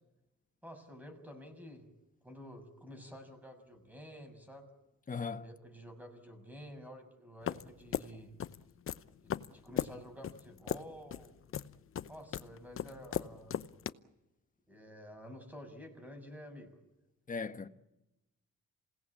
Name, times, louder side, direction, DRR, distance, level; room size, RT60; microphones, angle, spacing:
voice 1, 0.6-1.8 2.2-4.7 5.4-8.3 9.2-11.3 12.1-13.6 14.7-16.7, equal, 5° right, 6.5 m, -50 dB
voice 2, 5.1-5.5 17.3-17.7, left 5 dB, 25° left, 1.3 m, -38 dB
sound 1, 7.5-13.9, left 9 dB, 45° left, 0.8 m, -38 dB
27.5 x 18.0 x 8.5 m
cardioid pair, 90°, 30 cm